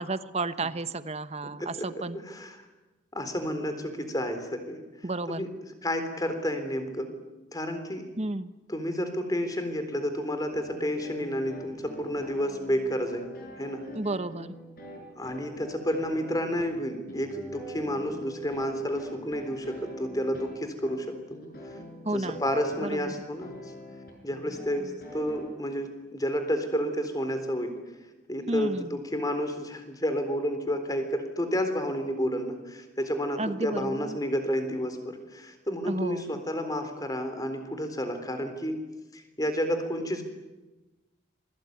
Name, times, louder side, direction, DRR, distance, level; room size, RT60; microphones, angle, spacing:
voice 1, 0.0-2.2 5.0-5.5 8.2-8.5 13.9-14.6 22.0-22.4 22.8-23.1 28.5-29.0 33.4-34.2 35.9-36.4, right 2 dB, 35° right, 12 dB, 1.1 m, -32 dB
voice 2, 2.2-2.6 3.2-4.8 5.3-5.5 5.8-7.1 7.5-8.0 8.7-13.3 13.6-13.8 15.2-21.1 22.1-23.6 24.2-27.7 28.3-38.7 39.1-40.2, equal, 20° left, 8 dB, 3.9 m, -30 dB
sound 1, 10.5-25.5, left 1 dB, 50° left, 7.4 m, -44 dB
27.0 x 22.0 x 9.5 m, 1.1 s
head